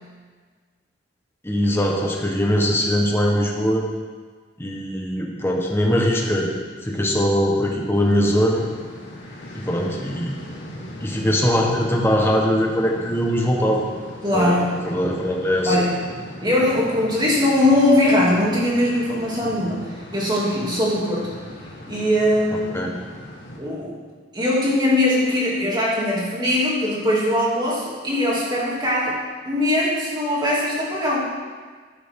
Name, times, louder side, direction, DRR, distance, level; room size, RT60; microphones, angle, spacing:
voice 1, 1.4-3.8 4.6-6.5 6.8-8.7 9.5-10.4 11.0-13.8 14.3-15.8 22.7-22.9, equal, 15° left, -1 dB, 1.5 m, -21 dB
sound 1, 7.9-23.6, left 1 dB, 65° left, 1.9 m, -39 dB
voice 2, 14.2-14.7 15.6-15.9 16.4-21.3 21.9-22.8 23.6-24.0 24.3-29.2 29.5-31.3, left 1 dB, 25° right, -6 dB, 3.0 m, -21 dB
12.5 x 9.6 x 3.9 m, 1.5 s
head